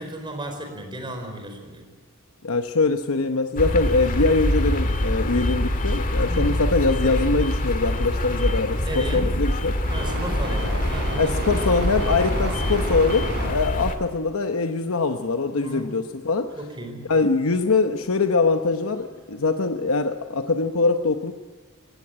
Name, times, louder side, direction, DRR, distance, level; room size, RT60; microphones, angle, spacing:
voice 1, 0.0-1.8 6.3-6.5 8.8-9.3 9.9-11.4 15.6-15.9 16.6-17.0, right 1 dB, 20° right, 4 dB, 4.5 m, -34 dB
voice 2, 2.4-9.8 11.2-16.5 17.1-21.3, left 3 dB, 65° left, 7 dB, 0.9 m, -23 dB
sound 1, 3.6-13.9, left 1 dB, 40° left, 1.9 m, -25 dB
sound 2, 9.8-13.5 14.6-14.7 15.5-16.2 17.0-19.9, right 1 dB, 50° right, 5.6 m, -33 dB
19.0 x 16.5 x 8.8 m, 1.5 s
head